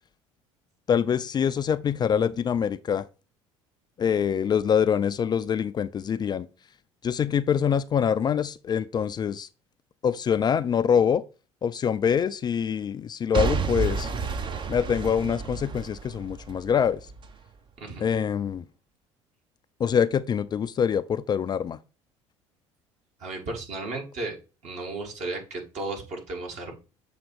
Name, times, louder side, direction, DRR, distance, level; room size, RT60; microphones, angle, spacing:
voice 1, 0.9-3.1 4.0-6.5 7.0-9.5 10.0-11.2 11.6-14.1 14.7-17.0 18.0-18.6 19.8-21.8, left 7 dB, 30° left, 0.3 m, -25 dB
Boom / Shatter / Crushing, 13.3-17.3 17.9-18.0, right 4 dB, 30° right, 0.7 m, -30 dB
voice 2, 23.2-24.4 24.6-26.7, right 2 dB, 50° right, 1.9 m, -34 dB
7.2 x 2.8 x 4.7 m
figure-of-eight pair, 60°, 15 cm